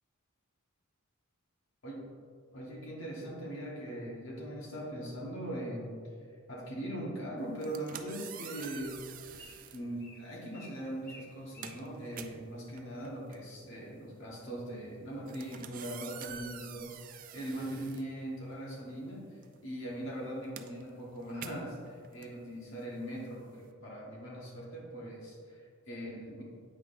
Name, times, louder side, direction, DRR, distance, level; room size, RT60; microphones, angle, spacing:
voice 1, 2.5-6.0 6.5-9.0 9.3-9.4 9.7-19.2 19.6-26.4, right 1 dB, 60° left, -4 dB, 1.4 m, -41 dB
sound 1, 7.5-9.9 10.7-10.9 11.3-18.8 19.1-23.7, right 8 dB, 40° right, 0.3 m, -48 dB
Bird, 7.9-13.0, left 1 dB, 15° left, 1.3 m, -58 dB
8.9 x 5.7 x 2.6 m, 2.1 s
head